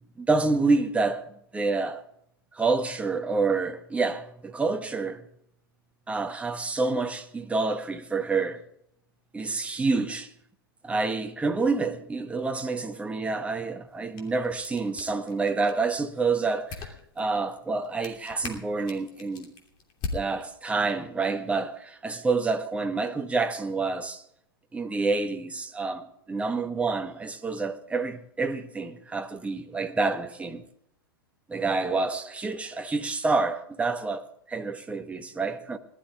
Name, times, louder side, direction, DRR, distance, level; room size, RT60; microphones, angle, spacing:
voice 1, 0.2-1.2 1.5-2.0 2.5-5.2 6.1-8.6 9.3-10.3 10.8-19.5 20.1-24.2 24.7-30.6 31.5-35.8, right 3 dB, 10° right, 1.4 m, -28 dB
sound 1, 13.9-21.0, left 4 dB, 35° left, 2.9 m, -42 dB
20.0 x 12.0 x 3.5 m
figure-of-eight pair, 100°, 12 cm